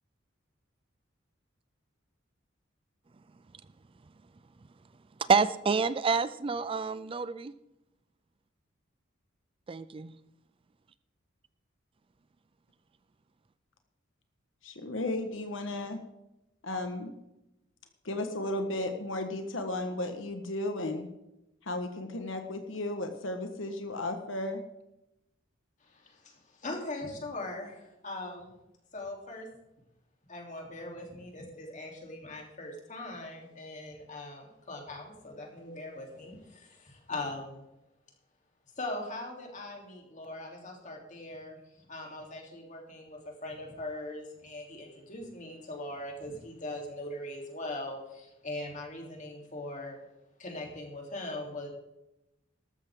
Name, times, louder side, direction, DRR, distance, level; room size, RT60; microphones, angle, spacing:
voice 1, 5.3-7.5 9.7-10.1, right 5 dB, 25° right, 15 dB, 0.4 m, -27 dB
voice 2, 14.6-16.0 16.6-17.2 18.0-21.1 21.6-24.6, left 2 dB, 70° left, 6 dB, 1.4 m, -34 dB
voice 3, 25.8-28.5 28.9-29.5 30.3-37.6 38.8-41.6 41.9-50.0 50.4-51.7, left 2 dB, 40° left, 1 dB, 3.3 m, -41 dB
14.0 x 13.0 x 3.7 m, 0.89 s
head